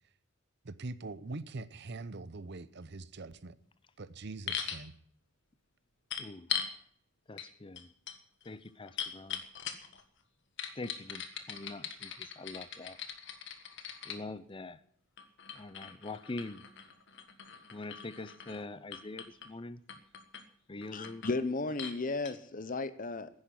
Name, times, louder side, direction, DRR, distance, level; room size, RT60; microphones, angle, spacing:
voice 1, 0.6-3.6 4.0-4.9, right 3 dB, 60° right, 0.8 m, -43 dB
sound 1, 4.5-4.8 6.1-6.7 7.4-7.5 7.8-10.0 10.6-14.2 15.2-18.6 18.9-19.5 19.9-20.4 20.8-21.4 21.8-22.0 22.3-22.4, left 8 dB, 65° left, 1.6 m, -40 dB
voice 2, 7.3-7.9 8.5-9.4 10.8-13.0 14.1-14.8 15.5-16.6 17.7-19.8 20.7-21.2 21.5-21.8, left 2 dB, 25° left, 0.6 m, -44 dB
voice 3, 20.9-23.3, left 3 dB, 45° left, 1.0 m, -34 dB
10.5 x 10.0 x 9.9 m
head